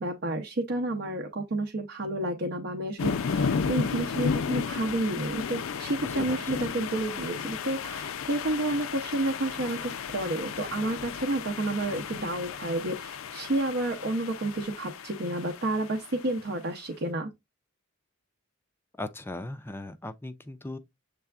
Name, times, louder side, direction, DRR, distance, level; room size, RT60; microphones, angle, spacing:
voice 1, 0.0-17.3, right 1 dB, 60° right, 0.7 m, -30 dB
sound 1, 3.0-16.4, left 5 dB, 75° left, 0.4 m, -33 dB
voice 2, 6.0-6.4 19.0-20.8, left 2 dB, 10° left, 0.4 m, -38 dB
6.8 x 3.3 x 2.3 m
head